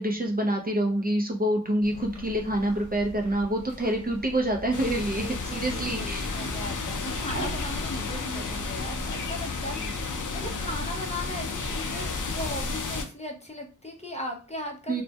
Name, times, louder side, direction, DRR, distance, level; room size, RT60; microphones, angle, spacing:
voice 1, 0.0-6.3 9.7-9.9 14.9-15.0, right 1 dB, 30° right, 2 dB, 0.4 m, -27 dB
sound 1, 1.8-9.2, equal, 70° right, 0.9 m, -43 dB
sound 2, 4.7-13.1, left 3 dB, 85° left, 0.5 m, -32 dB
voice 2, 5.1-15.0, left 1 dB, 20° left, 1 dB, 0.5 m, -38 dB
2.2 x 2.0 x 2.7 m, 0.36 s
wide cardioid pair, 50°, 30 cm